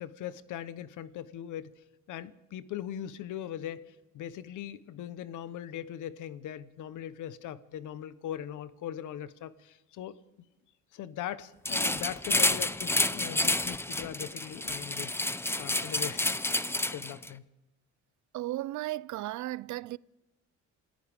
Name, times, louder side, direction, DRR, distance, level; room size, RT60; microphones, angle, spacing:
voice 1, 0.0-1.7 2.1-10.1 10.9-16.3 16.7-17.4, left 11 dB, 80° left, 1.0 m, -40 dB
sound 1, 11.6-17.3, left 2 dB, 10° left, 0.7 m, -29 dB
voice 2, 18.3-20.0, right 16 dB, 75° right, 0.5 m, -35 dB
27.0 x 14.5 x 3.6 m
cardioid pair, 90°, 30 cm